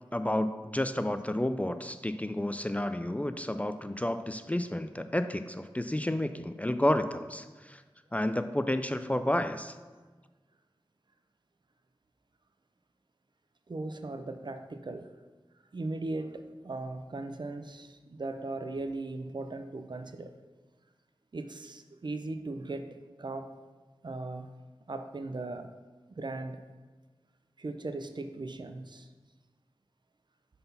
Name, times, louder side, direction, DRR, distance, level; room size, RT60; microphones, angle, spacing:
voice 1, 0.1-7.8 8.1-9.7, left 1 dB, 15° left, 0.3 m, -31 dB
voice 2, 13.7-15.1 15.7-20.4 21.3-23.5 24.0-24.5 24.9-25.7 26.1-26.6 27.6-29.1, right 2 dB, 55° right, 0.5 m, -38 dB
5.6 x 4.0 x 5.4 m
wide cardioid pair, 45°, 9 cm